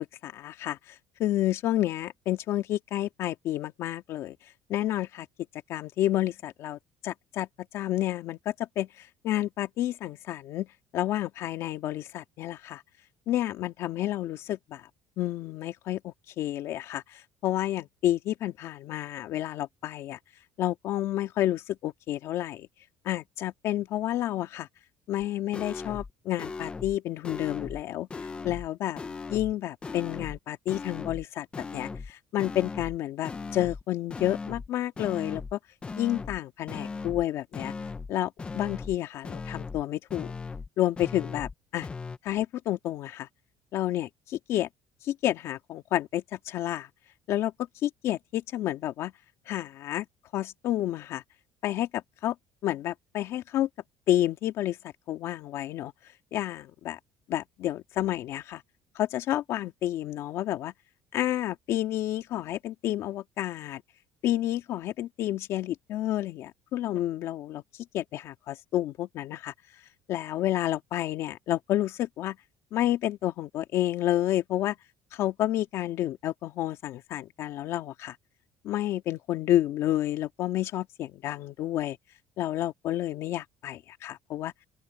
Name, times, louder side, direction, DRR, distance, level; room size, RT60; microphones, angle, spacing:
voice 1, 0.2-0.8 1.2-4.4 4.7-5.3 5.7-7.5 7.7-10.7 10.9-12.8 13.3-14.8 15.2-20.2 20.6-22.7 23.0-24.7 25.1-28.1 28.4-29.0 29.3-31.5 31.7-35.6 36.0-37.7 38.1-40.3 40.8-41.9 42.2-43.3 43.7-44.7 45.0-46.9 47.3-47.5 47.8-49.1 49.5-50.1 50.3-51.2 51.6-52.3 52.6-53.7 54.1-54.8 55.1-55.9 56.3-57.0 57.3-58.6 59.0-60.7 61.1-63.8 64.2-69.5 70.1-72.4 72.7-74.8 75.1-78.2 78.6-82.0 82.4-84.5, left 13 dB, 60° left, 2.2 m, -30 dB
sound 1, 25.2-25.3 25.5-26.1 26.4-27.0 27.2-27.8 28.1-28.7 29.0-29.5 29.8-30.4 30.7-31.3 31.5-32.1 32.4-33.0 33.2-33.8 34.1-34.7 35.0-35.5 35.8-36.4 36.7-37.3 37.5-38.1 38.4-39.0 39.2-39.8 40.1-40.7 41.0-41.5 41.8-42.2, left 4 dB, 20° left, 1.1 m, -38 dB
open air
cardioid pair, 140°, 5 cm